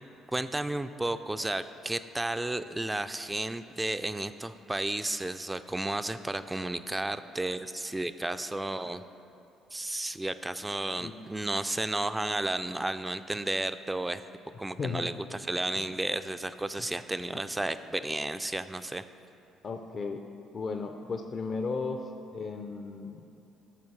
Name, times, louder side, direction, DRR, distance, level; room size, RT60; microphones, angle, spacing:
voice 1, 0.3-9.0 9.7-14.2 14.6-19.0, right 2 dB, 15° right, 11 dB, 0.3 m, -33 dB
voice 2, 14.8-15.1 19.6-20.2 20.5-22.0 22.3-23.2, left 4 dB, 45° left, 5 dB, 0.5 m, -35 dB
12.5 x 6.7 x 3.2 m, 2.7 s
hypercardioid pair, 55°, 0 cm